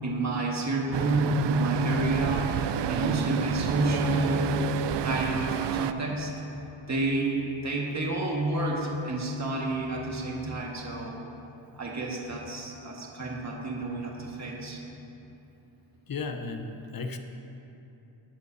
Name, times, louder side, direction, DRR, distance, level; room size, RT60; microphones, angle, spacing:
voice 1, 0.0-2.5 2.9-4.6 5.0-6.3 6.9-11.2 11.8-14.8, right 1 dB, 35° right, -2 dB, 1.9 m, -29 dB
Traffic noise roadway noise, 0.9-5.9, right 9 dB, 65° right, 0.5 m, -29 dB
voice 2, 16.1-17.2, left 4 dB, 45° left, 6 dB, 1.0 m, -34 dB
18.5 x 10.5 x 2.8 m, 2.9 s
cardioid pair, 100°, 47 cm